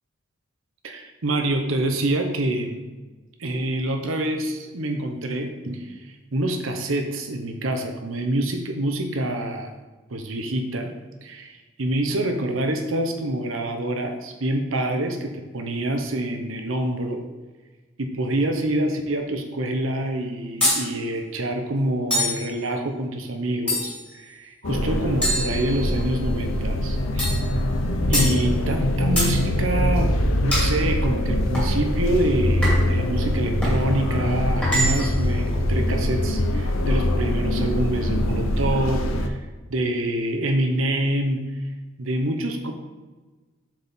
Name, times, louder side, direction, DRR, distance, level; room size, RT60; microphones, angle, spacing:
voice 1, 0.8-2.8 3.4-9.7 10.1-10.9 11.2-17.2 18.0-27.3 28.1-30.1 30.4-39.4 39.7-41.5 42.0-42.7, right 1 dB, 80° right, 4 dB, 0.9 m, -26 dB
sound 1, 20.6-20.9 22.1-22.5 23.7-24.1 25.2-26.1 27.2-27.5 28.1-28.4 29.2-29.4 30.5-30.8 31.5-31.8 32.6-33.0 33.6-33.8 34.6-35.2, equal, 5° left, 1.9 m, -24 dB
sound 2, 24.6-39.3, left 1 dB, 85° left, 0.6 m, -23 dB
7.6 x 4.3 x 3.6 m, 1.3 s
head